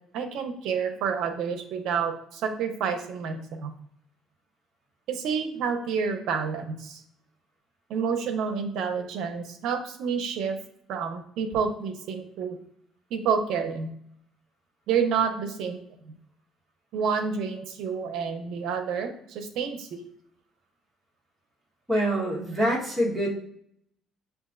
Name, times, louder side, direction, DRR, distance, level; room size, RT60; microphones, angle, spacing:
voice 1, 0.1-3.7 5.1-7.0 7.9-10.6 10.9-12.6 13.1-13.9 14.9-15.8 16.1-16.2 16.9-20.0, right 6 dB, 70° right, 6 dB, 0.7 m, -29 dB
voice 2, 21.9-23.3, equal, 10° right, -5 dB, 1.2 m, -25 dB
7.3 x 2.5 x 2.5 m, 0.70 s
cardioid pair, 130°, 0 cm